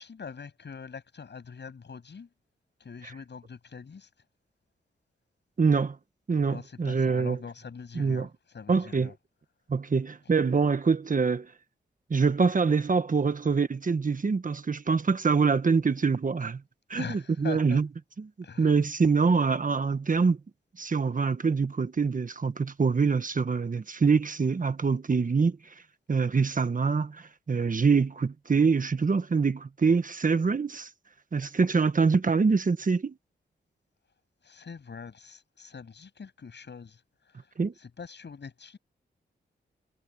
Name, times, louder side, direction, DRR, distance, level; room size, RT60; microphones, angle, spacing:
voice 1, 0.0-2.3 2.8-4.1 6.5-9.1 17.0-17.8 18.4-18.7 34.4-37.0 37.3-37.5 37.8-38.8, left 5 dB, 60° left, 7.9 m, -43 dB
voice 2, 5.6-6.0 6.3-7.4 7.9-8.3 8.7-9.1 9.7-11.5 12.1-16.6 16.9-17.9 18.2-18.3 18.6-20.4 20.8-25.6 26.1-30.9 31.3-33.1 37.6-37.7, right 5 dB, 45° right, 1.4 m, -25 dB
cardioid pair, 60°, 20 cm